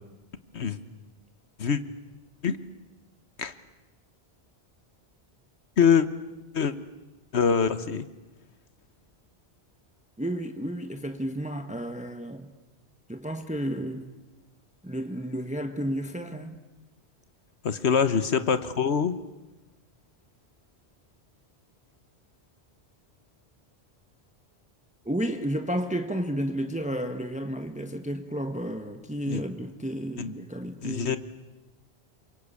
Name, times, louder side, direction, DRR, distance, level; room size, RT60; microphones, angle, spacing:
voice 1, 7.3-8.1 17.6-19.2 29.3-29.4 30.2-30.3 30.8-31.2, left 6 dB, 90° left, 1.5 m, -24 dB
voice 2, 10.2-12.5 13.1-14.2 14.8-16.5 25.0-31.2, right 1 dB, 5° right, 1.2 m, -32 dB
28.0 x 24.5 x 8.5 m
omnidirectional pair, 1.1 m